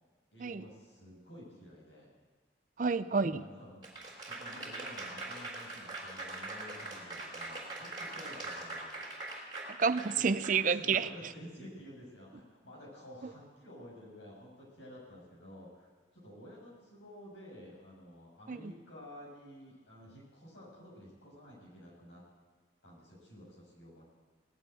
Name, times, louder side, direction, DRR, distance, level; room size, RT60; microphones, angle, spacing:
voice 1, 0.3-2.1 3.3-3.8 4.2-9.0 10.0-10.4 10.7-22.2 22.8-24.0, equal, 90° left, -3 dB, 6.4 m, -52 dB
voice 2, 2.8-3.4 9.7-11.1 13.2-13.3 18.5-18.7, right 5 dB, 45° right, 14 dB, 0.5 m, -30 dB
Applause / Crowd, 3.8-11.0, right 2 dB, 25° right, 3.5 m, -42 dB
18.5 x 7.8 x 9.1 m, 1.5 s
head